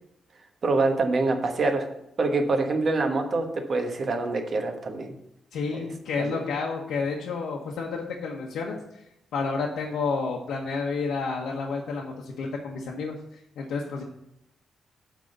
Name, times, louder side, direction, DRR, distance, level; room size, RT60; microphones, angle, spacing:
voice 1, 0.6-1.9 2.2-5.1 5.7-5.9 6.2-6.4, right 3 dB, 35° right, 4 dB, 1.2 m, -25 dB
voice 2, 5.5-8.8 9.3-14.0, left 4 dB, 90° left, -2 dB, 1.1 m, -30 dB
9.3 x 3.8 x 6.7 m, 0.80 s
wide cardioid pair, 170°, 0 cm